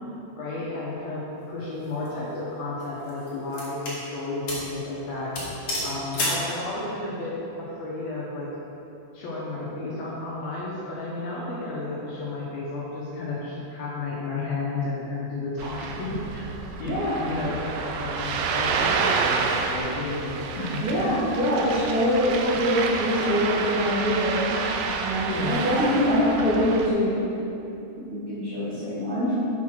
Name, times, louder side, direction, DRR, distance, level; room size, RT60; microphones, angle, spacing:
voice 1, 0.4-5.3 5.8-8.5 9.1-16.4 16.8-20.8 25.2-25.6, left 2 dB, 70° left, -7 dB, 2.5 m, -32 dB
sound 1, 1.8-2.1 2.8-4.0 4.5-4.7 5.0-5.1 5.3-6.5, left 1 dB, 50° left, 1.8 m, -30 dB
Ocean, 15.6-26.9, right 5 dB, 80° right, 2.7 m, -29 dB
voice 2, 16.8-17.2 20.8-24.6 25.0-27.5 27.9-29.3, equal, 50° right, -14 dB, 1.7 m, -24 dB
7.4 x 5.5 x 6.2 m, 2.9 s
omnidirectional pair, 5.4 m